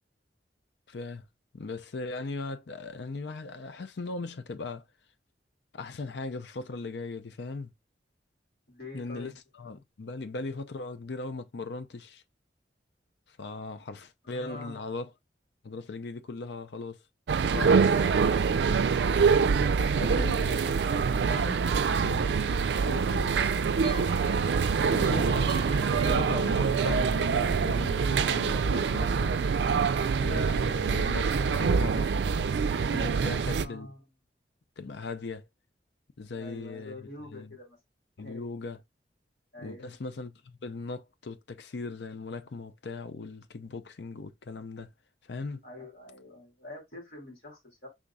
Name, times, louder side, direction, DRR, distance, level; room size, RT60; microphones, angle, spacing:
voice 1, 0.9-1.3 1.5-4.8 5.7-7.7 8.9-12.2 13.3-15.1 15.6-17.0 17.5-17.8 20.0-21.6 22.0-22.3 24.9-29.4 30.2-32.1 32.9-33.9 34.8-35.5 36.2-37.5 38.2-38.8 39.6-44.9 45.3-45.6, left 3 dB, 75° left, 0.5 m, -38 dB
voice 2, 8.7-9.3 14.2-14.8 19.2-20.5 22.4-23.5 33.2-34.1 36.3-37.8 38.2-38.5 39.5-39.9 45.6-47.9, left 2 dB, 60° left, 2.8 m, -45 dB
sound 1, 17.3-33.7, right 5 dB, 75° right, 0.4 m, -25 dB
sound 2, 23.8-26.9, left 1 dB, 30° left, 2.0 m, -49 dB
5.3 x 3.7 x 2.3 m
head